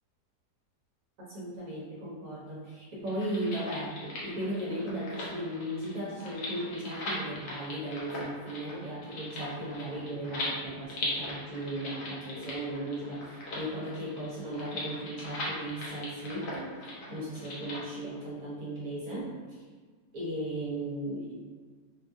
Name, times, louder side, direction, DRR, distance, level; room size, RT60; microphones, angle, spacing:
voice 1, 1.3-16.7 17.1-19.3 20.1-21.5, right 1 dB, 65° right, -5 dB, 1.1 m, -36 dB
sound 1, 3.0-17.8, left 2 dB, 80° left, 1.4 m, -40 dB
3.6 x 2.3 x 2.5 m, 1.5 s
omnidirectional pair, 1.7 m